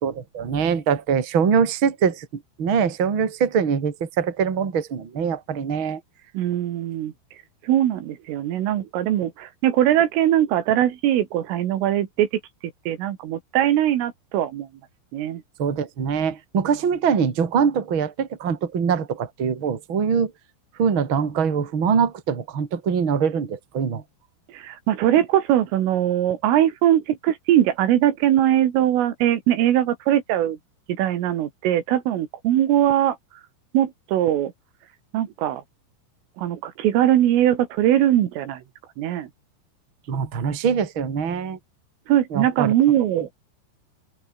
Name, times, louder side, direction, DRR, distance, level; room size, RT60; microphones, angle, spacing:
voice 1, 0.0-6.0 15.6-20.3 20.8-24.0 40.1-41.6 42.3-42.7 43.1-43.2, right 6 dB, 30° right, 2.7 m, -23 dB
voice 2, 6.3-7.1 7.6-12.3 12.9-14.7 15.1-15.4 24.5-30.6 30.9-33.2 33.7-34.5 35.1-35.6 36.4-38.6 39.0-39.3 42.1-43.3, right 12 dB, 75° right, 4.5 m, -21 dB
open air
omnidirectional pair, 5.9 m